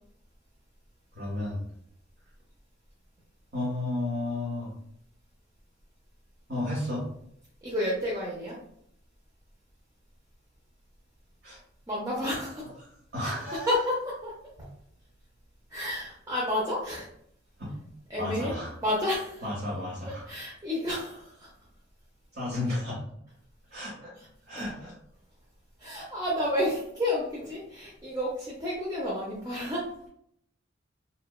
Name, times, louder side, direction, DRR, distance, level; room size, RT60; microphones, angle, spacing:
voice 1, 1.1-1.6 3.5-4.7 6.5-7.0 11.4-11.6 12.6-12.7 13.1-13.8 17.6-17.7 18.2-18.7 19.4-20.2 22.3-23.0 23.7-24.1 24.5-25.0, left 2 dB, 60° right, -8 dB, 0.9 m, -32 dB
voice 2, 7.6-8.6 11.9-12.7 13.2-13.3 13.7-14.7 15.7-17.1 18.1-18.5 18.8-19.4 20.3-21.5 24.6-24.7 25.8-29.9, left 1 dB, 20° right, -6 dB, 0.4 m, -30 dB
2.8 x 2.1 x 2.2 m, 0.69 s
head